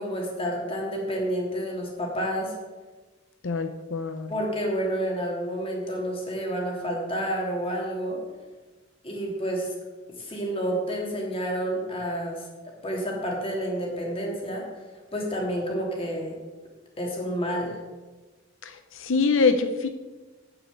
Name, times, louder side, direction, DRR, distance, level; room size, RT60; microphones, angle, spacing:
voice 1, 0.0-2.5 4.3-8.2 9.0-9.7 10.2-12.4 12.8-14.6 15.1-16.3 17.0-17.8, equal, 30° left, -1 dB, 2.9 m, -29 dB
voice 2, 3.4-4.3 18.6-19.9, left 4 dB, 80° left, 8 dB, 0.7 m, -25 dB
8.5 x 7.2 x 8.3 m, 1.3 s
head